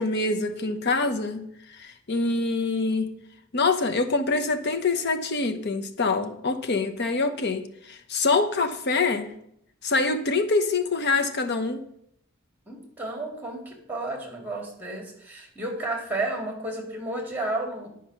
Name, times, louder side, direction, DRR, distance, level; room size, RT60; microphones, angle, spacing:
voice 1, 0.0-3.1 3.5-9.3 9.8-11.8, left 3 dB, 55° left, 8 dB, 0.9 m, -25 dB
voice 2, 12.7-17.9, right 2 dB, 10° right, 0 dB, 2.1 m, -32 dB
9.9 x 4.9 x 5.8 m, 0.73 s
head